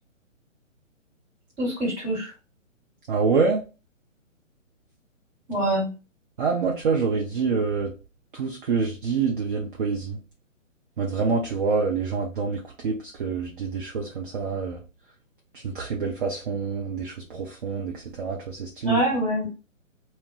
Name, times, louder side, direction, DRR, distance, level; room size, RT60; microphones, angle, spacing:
voice 1, 1.6-2.3 5.5-5.9 18.8-19.5, right 1 dB, 15° right, -3 dB, 1.5 m, -25 dB
voice 2, 3.1-3.6 6.4-7.9 8.3-10.2 11.0-12.9 13.2-14.8 15.6-19.0, right 4 dB, 40° right, -1 dB, 0.6 m, -26 dB
2.2 x 2.2 x 3.8 m, 0.32 s
figure-of-eight pair, 135°, 39 cm